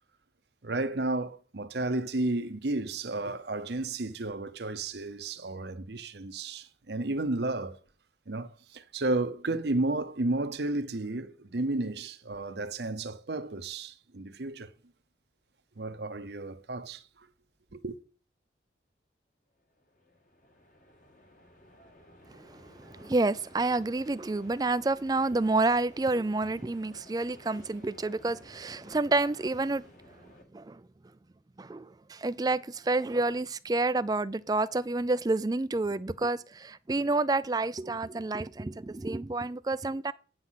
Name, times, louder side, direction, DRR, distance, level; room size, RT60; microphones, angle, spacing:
voice 1, 0.6-7.8 8.3-14.7 15.8-17.3 17.7-18.0, right 2 dB, 65° right, 0.8 m, -32 dB
sound 1, 19.6-30.4, left 1 dB, 45° left, 1.9 m, -56 dB
voice 2, 22.3-29.8 30.5-30.8 31.6-40.1, right 2 dB, 20° right, 0.3 m, -29 dB
9.5 x 5.8 x 6.3 m
head